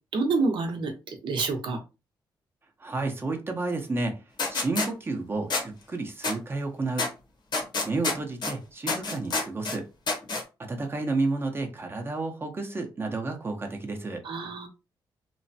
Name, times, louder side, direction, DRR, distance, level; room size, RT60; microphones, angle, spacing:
voice 1, 0.1-1.8 14.2-14.7, right 3 dB, 70° right, 0.8 m, -28 dB
voice 2, 2.8-4.2 4.5-7.1 7.8-9.9 10.6-14.2, right 3 dB, 25° right, 0.8 m, -31 dB
sound 1, 4.4-4.9 5.5-5.6 6.2-6.3 7.0-7.1 7.5-8.5 8.9-9.8 10.1-10.4, left 3 dB, 60° left, 1.0 m, -27 dB
3.1 x 2.1 x 2.7 m
cardioid pair, 95°, 9 cm